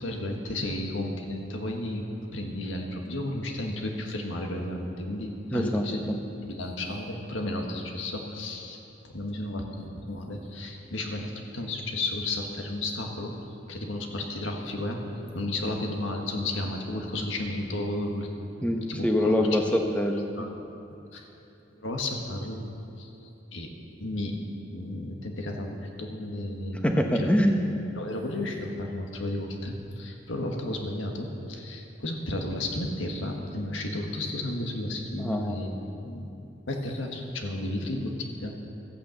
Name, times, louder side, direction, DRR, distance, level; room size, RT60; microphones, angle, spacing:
voice 1, 0.0-6.2 6.5-13.4 13.7-15.0 15.3-18.3 18.9-19.6 20.4-20.5 21.1-21.3 21.8-22.6 23.0-23.7 24.0-24.4 24.7-26.8 27.1-27.3 27.9-35.8 36.0-36.3 36.7-38.6, left 1 dB, 85° left, 2 dB, 1.7 m, -33 dB
voice 2, 5.5-6.2 18.6-20.3 26.8-27.6 35.2-35.6, equal, 5° left, 2 dB, 1.0 m, -25 dB
13.5 x 8.7 x 7.8 m, 2.8 s
head